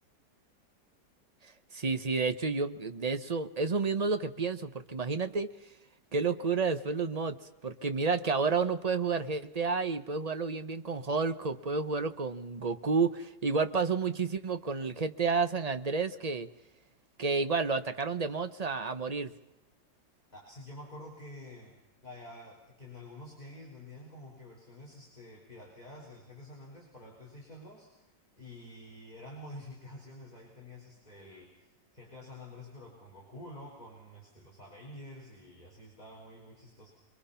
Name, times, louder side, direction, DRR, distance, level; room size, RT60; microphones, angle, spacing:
voice 1, 1.7-5.5 6.1-7.4 7.6-16.5 17.2-19.3, right 4 dB, 35° right, 9 dB, 0.6 m, -30 dB
voice 2, 20.3-21.8 22.0-28.1 28.4-36.9, left 1 dB, 20° left, -2 dB, 4.6 m, -49 dB
28.5 x 22.5 x 5.7 m, 0.94 s
omnidirectional pair, 2.0 m